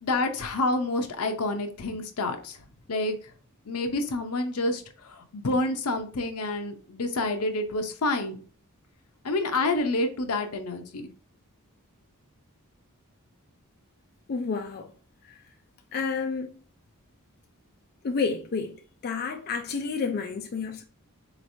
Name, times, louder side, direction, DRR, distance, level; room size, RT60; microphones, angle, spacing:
voice 1, 0.0-2.6 2.9-3.2 3.7-8.4 9.2-11.1, left 2 dB, 80° left, 0.7 m, -28 dB
voice 2, 14.3-14.9 15.9-16.5 18.0-18.7 19.0-20.8, left 5 dB, 45° left, 0.4 m, -30 dB
4.1 x 3.1 x 2.6 m
head